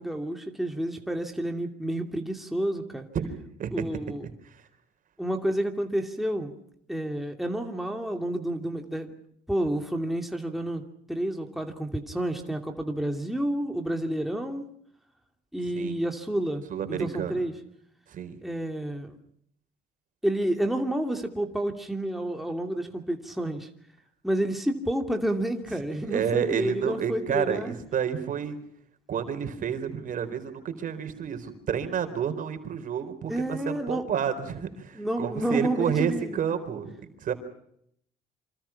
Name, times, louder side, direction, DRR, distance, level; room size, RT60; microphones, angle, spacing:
voice 1, 0.0-3.1 3.7-4.3 5.2-6.5 6.9-9.1 9.5-10.8 11.1-14.7 15.5-16.6 16.9-17.5 18.4-19.2 20.2-23.7 24.2-27.8 33.3-34.0 34.9-36.4, right 1 dB, ahead, 3 dB, 2.7 m, -30 dB
voice 2, 3.1-3.9 4.5-4.6 15.7-16.0 16.7-17.4 18.1-18.4 26.1-28.6 29.1-36.9 37.2-37.3, right 8 dB, 50° right, 8 dB, 4.3 m, -30 dB
27.0 x 26.5 x 5.9 m, 0.70 s
cardioid pair, 110°, 17 cm